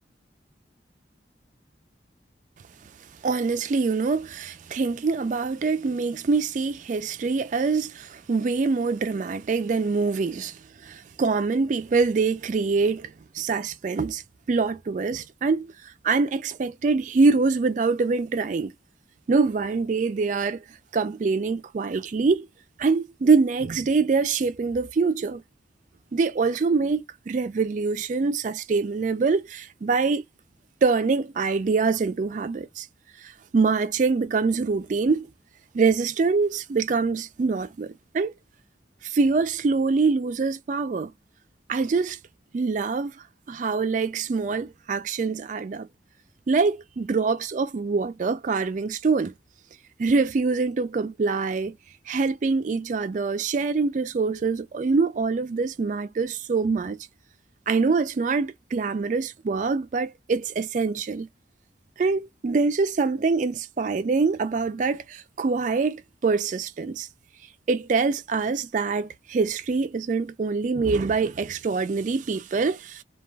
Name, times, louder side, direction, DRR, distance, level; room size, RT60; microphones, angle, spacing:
voice 1, 3.2-14.2 14.5-18.7 19.3-20.6 20.9-22.5 22.8-25.4 26.1-30.2 30.8-32.9 33.2-35.3 35.7-38.3 39.0-41.1 41.7-42.2 42.5-43.1 43.5-45.9 46.5-49.3 50.0-51.8 52.1-57.0 57.7-61.3 62.0-67.1 67.7-73.0, right 4 dB, 40° right, 0.3 m, -24 dB
2.3 x 2.1 x 3.2 m
head